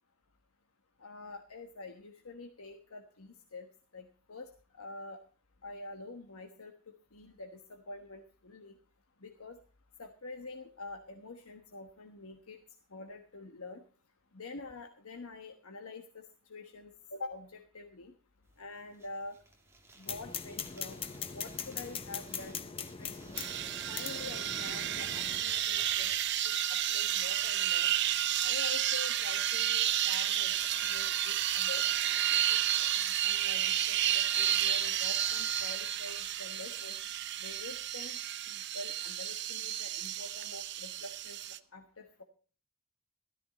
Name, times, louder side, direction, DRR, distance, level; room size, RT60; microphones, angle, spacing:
voice 1, 1.0-3.7 3.9-5.2 5.6-6.7 7.1-8.7 9.2-9.6 10.0-12.6 12.9-13.8 14.3-16.2 16.5-18.1 18.6-19.4 20.0-21.0 21.3-23.3 23.9-26.1 26.4-27.9 28.4-30.5 30.9-31.8 32.4-32.6 33.0-37.0 37.4-38.2 38.5-41.4 41.7-42.2, left 2 dB, 80° left, 5 dB, 1.2 m, -46 dB
sound 1, 18.5-18.6 18.8-35.7, right 3 dB, 10° right, 2.1 m, -53 dB
sound 2, 20.1-25.4, left 7 dB, 25° left, 0.6 m, -41 dB
sound 3, 23.4-41.6, right 11 dB, 55° right, 0.7 m, -31 dB
13.5 x 13.0 x 4.1 m, 0.40 s
head